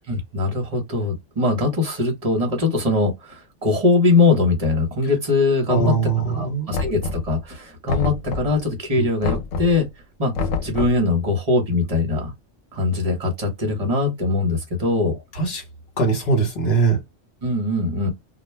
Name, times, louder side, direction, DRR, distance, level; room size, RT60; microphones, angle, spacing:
voice 1, 0.1-6.0 6.3-9.9 10.2-12.3 12.7-15.2 17.4-18.1, left 3 dB, 30° right, 1.0 m, -21 dB
voice 2, 5.7-6.7 8.9-9.1 15.3-15.6 16.0-17.0, right 4 dB, 55° left, 1.3 m, -21 dB
Knock, 6.7-7.5 7.9-8.7 9.2-9.8 10.3-11.1, left 3 dB, 85° left, 1.0 m, -26 dB
2.4 x 2.2 x 3.1 m
omnidirectional pair, 1.3 m